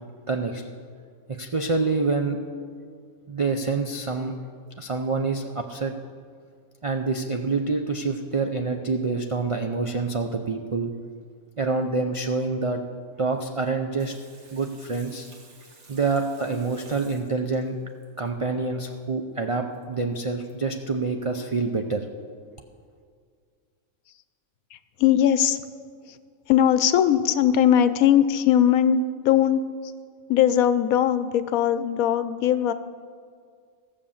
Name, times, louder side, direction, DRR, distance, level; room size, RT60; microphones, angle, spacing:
voice 1, 0.3-0.6 1.3-2.4 3.3-4.3 4.8-5.9 6.8-10.9 11.6-12.8 13.2-14.1 14.5-15.3 15.9-17.8 18.2-22.1, right 3 dB, 55° right, 4 dB, 0.3 m, -26 dB
Water tap faucet / Sink (filling or washing), 14.0-18.3 19.7-19.8 20.1-20.2 20.5-20.6, right 3 dB, 85° right, 2.1 m, -53 dB
voice 2, 24.7-25.6 26.1-26.2 26.5-29.6 30.3-32.7, left 10 dB, 85° left, 13 dB, 1.1 m, -20 dB
15.0 x 6.8 x 7.2 m, 2.1 s
omnidirectional pair, 1.4 m